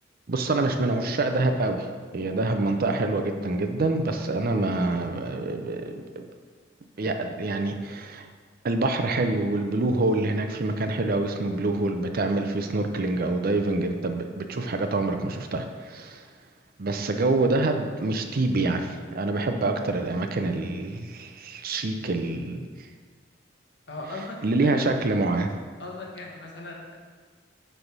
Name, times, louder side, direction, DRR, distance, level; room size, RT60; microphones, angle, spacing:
voice 1, 0.3-1.9 2.1-6.2 7.0-8.3 8.6-16.3 16.8-22.7 24.4-25.6, right 2 dB, 50° right, 6 dB, 0.6 m, -26 dB
voice 2, 23.9-24.9 25.8-27.0, left 2 dB, 60° left, -1 dB, 1.4 m, -38 dB
7.9 x 3.5 x 6.0 m, 1.5 s
head